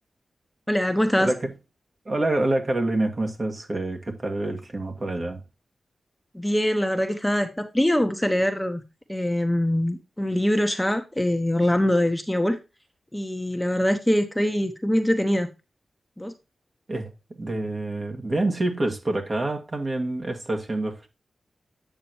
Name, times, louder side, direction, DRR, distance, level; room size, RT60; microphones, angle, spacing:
voice 1, 0.7-1.3 6.3-8.8 9.1-12.6 13.1-15.5 16.2-16.3, left 1 dB, 10° left, 1.0 m, -23 dB
voice 2, 1.2-1.5 2.1-5.4 16.9-21.1, right 2 dB, 45° right, 2.0 m, -27 dB
8.8 x 6.7 x 2.9 m
cardioid pair, 55°, 0 cm